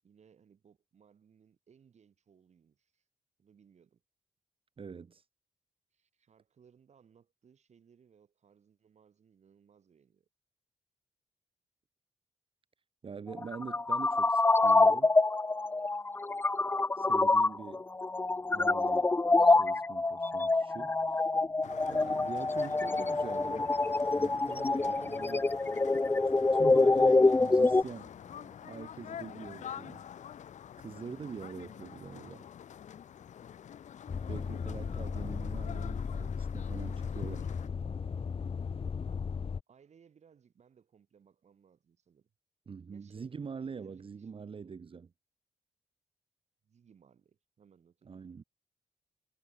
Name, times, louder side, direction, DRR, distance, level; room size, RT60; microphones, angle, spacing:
voice 1, 0.0-3.0 3.4-4.0 5.9-10.3 28.2-28.8 34.3-35.0 39.7-42.3 42.9-43.3 43.8-44.8 46.6-48.2, right 7 dB, 65° right, 6.5 m, -64 dB
voice 2, 4.8-5.2 13.0-15.1 17.0-17.8 18.5-19.1 19.4-21.3 21.9-23.7 24.1-25.5 26.2-28.2 28.7-30.0 30.8-32.5 34.3-37.5 42.7-45.1 48.0-48.4, right 5 dB, 45° right, 1.0 m, -44 dB
sound 1, 13.3-27.8, left 3 dB, 15° left, 0.4 m, -26 dB
sound 2, 21.6-37.7, left 9 dB, 70° left, 1.9 m, -47 dB
sound 3, 34.1-39.6, left 6 dB, 50° left, 1.2 m, -36 dB
supercardioid pair, 50°, 13 cm